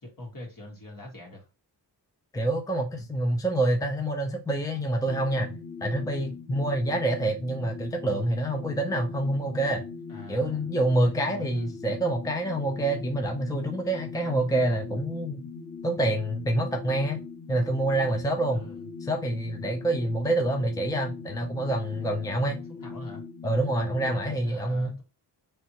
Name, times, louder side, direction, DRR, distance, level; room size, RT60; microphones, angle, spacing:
voice 1, 0.0-1.5 10.1-10.7 11.0-12.0 18.5-18.9 22.8-23.2 24.0-25.0, left 1 dB, 50° left, 2.1 m, -43 dB
voice 2, 2.3-5.5 5.8-9.8 10.3-15.4 15.8-17.2 17.5-18.6 19.0-22.6 23.4-25.0, right 1 dB, 10° left, 0.7 m, -27 dB
sound 1, 5.0-24.3, left 5 dB, 80° left, 1.4 m, -41 dB
4.3 x 3.3 x 3.0 m
cardioid pair, 65°, 42 cm